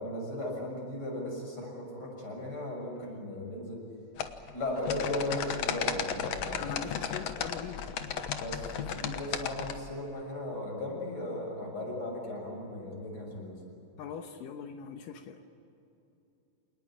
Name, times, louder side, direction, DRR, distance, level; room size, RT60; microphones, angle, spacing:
voice 1, 0.0-3.8 4.5-6.8 8.4-13.6, left 1 dB, 30° left, 0 dB, 7.0 m, -36 dB
sound 1, 4.2-9.8, left 8 dB, 60° left, 2.1 m, -34 dB
voice 2, 6.6-7.8 14.0-15.4, left 7 dB, 85° left, 5 dB, 2.8 m, -41 dB
27.5 x 19.5 x 8.8 m, 2.8 s
omnidirectional pair, 3.8 m